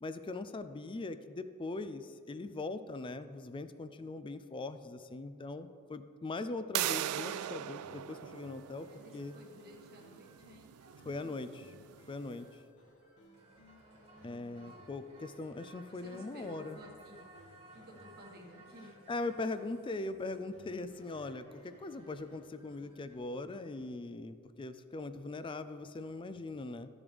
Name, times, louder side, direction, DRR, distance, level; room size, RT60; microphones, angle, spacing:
voice 1, 0.0-8.9 9.1-9.3 11.0-11.7 12.1-12.5 14.2-16.8 19.1-26.9, left 2 dB, 25° left, 11 dB, 0.4 m, -41 dB
sound 1, 6.7-12.3, right 12 dB, 80° right, 0.3 m, -40 dB
sound 2, 7.6-23.2, left 1 dB, 55° left, 2.5 m, -63 dB
voice 2, 8.9-11.8 13.8-14.9 15.9-17.2 17.7-19.0, equal, 45° right, 0 dB, 1.5 m, -55 dB
sound 3, 13.3-22.4, right 2 dB, 30° right, 1.7 m, -58 dB
13.0 x 7.2 x 3.4 m, 2.2 s
head